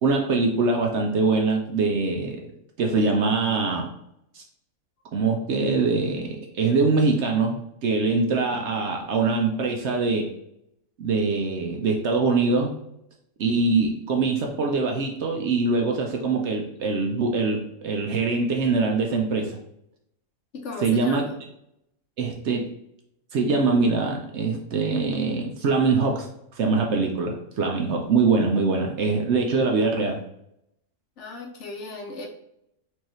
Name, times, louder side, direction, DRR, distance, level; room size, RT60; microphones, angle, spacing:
voice 1, 0.0-2.4 2.8-3.9 4.3-4.4 5.1-10.3 11.0-12.7 13.4-19.6 20.8-21.3 22.2-22.7 23.3-26.3 26.5-30.2, right 4 dB, 65° right, 2 dB, 0.8 m, -23 dB
voice 2, 20.5-21.4 31.2-32.3, left 3 dB, 65° left, 2 dB, 0.8 m, -36 dB
4.6 x 2.7 x 3.0 m, 0.77 s
omnidirectional pair, 1.5 m